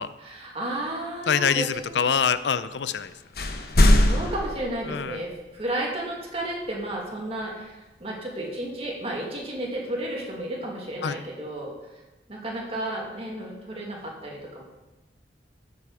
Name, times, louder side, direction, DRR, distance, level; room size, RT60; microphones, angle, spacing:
voice 1, 0.2-2.0 4.0-11.7 12.3-14.6, right 1 dB, 35° right, -2 dB, 2.5 m, -32 dB
voice 2, 1.3-3.1 4.9-5.2 11.0-11.2, left 7 dB, 85° left, 14 dB, 0.5 m, -25 dB
sound 1, 2.9-3.1 3.3-5.4, left 1 dB, 60° left, 1.1 m, -21 dB
13.0 x 7.9 x 4.9 m, 1.1 s
head